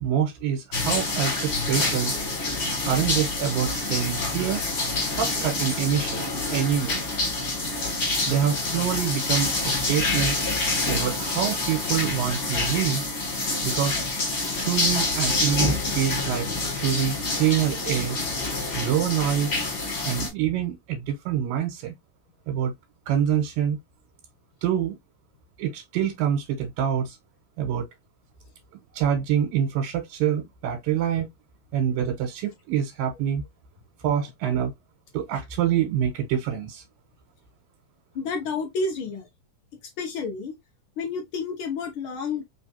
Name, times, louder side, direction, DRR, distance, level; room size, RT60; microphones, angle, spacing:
voice 1, 0.0-2.2 2.9-4.6 5.2-7.0 8.3-10.4 10.9-13.0 13.6-14.0 14.6-16.5 16.8-18.2 18.7-19.5 20.0-21.9 22.5-22.7 23.1-23.8 24.6-25.0 25.6-27.2 27.6-27.9 28.9-31.3 31.7-33.4 34.0-34.7 35.1-36.8, right 9 dB, 80° right, 2.8 m, -26 dB
sound 1, 0.7-20.3, left 2 dB, 35° left, 2.3 m, -27 dB
voice 2, 38.1-39.3 40.0-40.5 41.0-42.4, left 4 dB, 90° left, 1.1 m, -30 dB
5.2 x 3.4 x 2.7 m
omnidirectional pair, 4.0 m